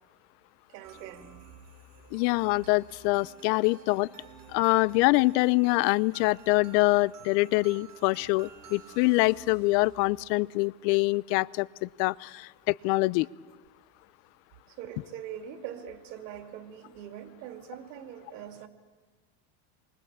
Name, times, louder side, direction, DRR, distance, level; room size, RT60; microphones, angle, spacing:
voice 1, 0.7-1.4 14.7-18.7, right 9 dB, 90° right, 7 dB, 2.8 m, -42 dB
sound 1, 0.8-10.5, right 5 dB, 40° right, 5.5 m, -52 dB
voice 2, 2.1-4.1 4.5-13.3, left 23 dB, 75° left, 22 dB, 0.8 m, -25 dB
28.0 x 23.5 x 8.8 m, 1.4 s
supercardioid pair, 130°, 50 cm